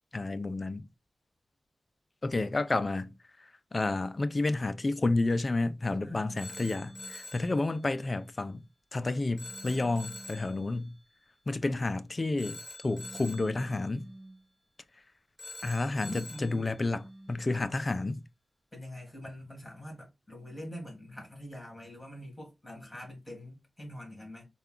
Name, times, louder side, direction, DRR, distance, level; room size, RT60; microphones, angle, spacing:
voice 1, 0.1-0.9 2.2-3.1 3.4-11.0 11.5-14.1 15.6-18.2, left 2 dB, 35° left, 0.4 m, -31 dB
sound 1, 5.9-7.3 9.4-10.8 12.9-14.5 16.9-17.6, right 1 dB, 35° right, 0.6 m, -50 dB
Telephone, 6.4-7.5 9.4-10.5 12.4-13.5 15.4-16.5, left 2 dB, 10° right, 2.7 m, -45 dB
voice 2, 16.0-16.7 17.5-17.8 18.7-24.5, left 1 dB, 10° left, 2.5 m, -44 dB
4.3 x 2.3 x 3.6 m
wide cardioid pair, 100°, 0 cm